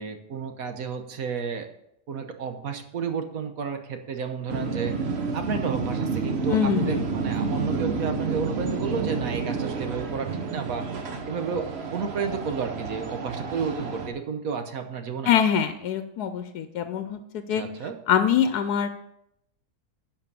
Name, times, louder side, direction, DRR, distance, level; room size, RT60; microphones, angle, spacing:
voice 1, 0.0-1.7 2.1-5.0 5.3-10.9 11.3-11.7 11.9-15.3 17.5-18.0, right 6 dB, 65° right, 7 dB, 1.4 m, -31 dB
sound 1, 4.5-14.1, right 4 dB, 50° right, 1.1 m, -30 dB
voice 2, 6.5-7.1 15.2-17.6 18.1-18.9, left 8 dB, 85° left, 9 dB, 1.2 m, -24 dB
10.5 x 5.1 x 6.8 m, 0.80 s
omnidirectional pair, 1.6 m